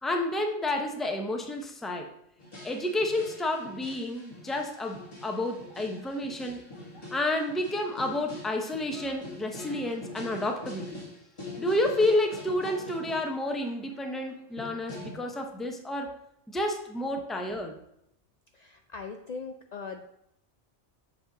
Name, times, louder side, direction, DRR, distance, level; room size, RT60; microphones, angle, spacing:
voice 1, 0.0-2.1 2.6-6.6 7.1-11.0 11.6-16.1 16.5-17.8, left 1 dB, ahead, 3 dB, 0.4 m, -30 dB
sound 1, 2.4-13.3 13.6-15.1, left 2 dB, 25° left, 1.5 m, -44 dB
voice 2, 18.5-20.0, left 5 dB, 75° left, 5 dB, 0.3 m, -40 dB
7.2 x 4.9 x 3.9 m, 0.76 s
omnidirectional pair, 1.3 m